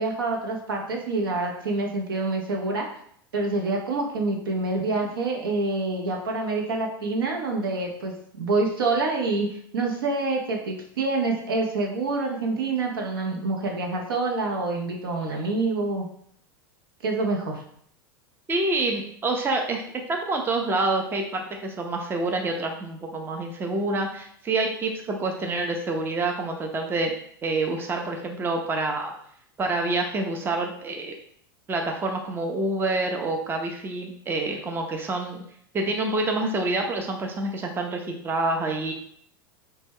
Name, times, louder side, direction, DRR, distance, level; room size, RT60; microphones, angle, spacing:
voice 1, 0.0-2.9 3.3-9.5 9.7-16.1 17.0-17.6, right 3 dB, 80° right, 0 dB, 0.7 m, -26 dB
voice 2, 18.5-19.8 20.1-27.1 27.4-29.1 29.6-31.1 31.7-35.4 35.7-38.9, right 2 dB, 20° right, 2 dB, 0.5 m, -27 dB
2.9 x 2.2 x 3.4 m, 0.65 s
hypercardioid pair, 90°, 12 cm